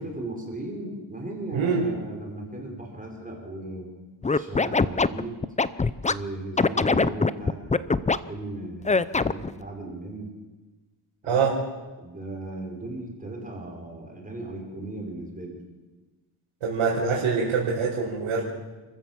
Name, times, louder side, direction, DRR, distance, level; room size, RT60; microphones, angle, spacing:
voice 1, 0.0-3.9 4.3-5.4 6.0-10.3 11.2-11.5 12.0-15.6, right 2 dB, 15° right, 0 dB, 5.1 m, -37 dB
voice 2, 1.5-1.8 11.3-11.5 16.6-18.4, right 5 dB, 85° right, -5 dB, 5.3 m, -24 dB
Scratching (performance technique), 4.2-6.1 6.6-8.2 8.8-9.5, left 4 dB, 15° left, 0.6 m, -22 dB
29.0 x 14.5 x 7.4 m, 1.2 s
cardioid pair, 115°, 49 cm